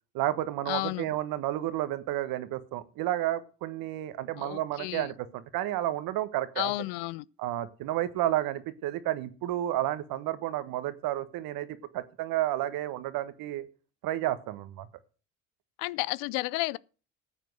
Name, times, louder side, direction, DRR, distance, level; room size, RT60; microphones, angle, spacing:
voice 1, 0.1-6.7 7.4-13.6 14.0-14.9, right 14 dB, 70° right, 1.4 m, -31 dB
voice 2, 0.7-1.1 4.4-5.1 6.6-7.2 15.8-16.8, left 21 dB, 80° left, 0.5 m, -32 dB
13.5 x 7.5 x 6.3 m
hypercardioid pair, 60°, 36 cm